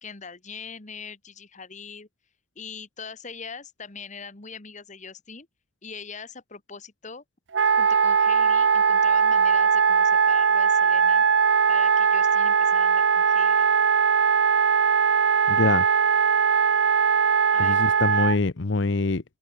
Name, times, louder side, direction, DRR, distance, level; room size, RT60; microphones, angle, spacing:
voice 1, 0.0-2.1 2.5-5.5 5.8-7.2 7.8-11.2 11.7-13.7 17.5-18.1, left 5 dB, 40° left, 1.7 m, -42 dB
Wind instrument woodwind instrument, 7.5-18.4, right 6 dB, 75° right, 0.7 m, -20 dB
voice 2, 15.5-15.8 17.6-19.2, left 3 dB, 75° left, 0.8 m, -24 dB
head